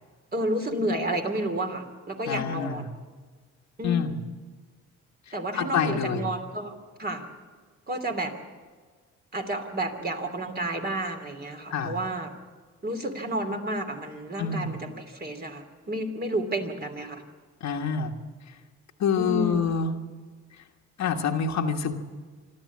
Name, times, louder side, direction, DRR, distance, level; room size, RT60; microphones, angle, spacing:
voice 1, 0.3-2.9 3.8-4.0 5.3-6.7 7.0-7.2 7.9-8.3 9.3-12.3 12.8-17.2 19.1-19.7, right 1 dB, 30° right, 5 dB, 3.1 m, -31 dB
voice 2, 2.3-2.9 3.8-4.2 5.5-6.3 11.7-12.0 14.4-14.7 17.6-18.1 19.0-20.0 21.0-21.9, left 6 dB, 65° left, 3 dB, 1.5 m, -26 dB
26.5 x 12.5 x 8.5 m, 1.5 s
cardioid pair, 90°, 30 cm